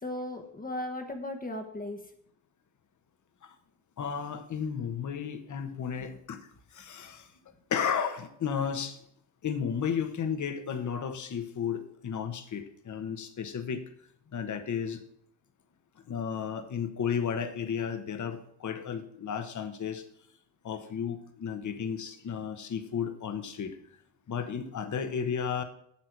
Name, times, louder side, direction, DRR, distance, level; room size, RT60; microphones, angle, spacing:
voice 1, 0.0-2.0, left 1 dB, 20° left, 4 dB, 1.1 m, -36 dB
voice 2, 4.0-6.4 6.7-7.3 7.7-9.0 9.4-13.8 14.3-15.0 16.1-20.0 20.6-23.7 24.3-25.6, left 7 dB, 45° left, 9 dB, 1.1 m, -33 dB
8.6 x 8.4 x 4.6 m, 0.70 s
wide cardioid pair, 175°, 42 cm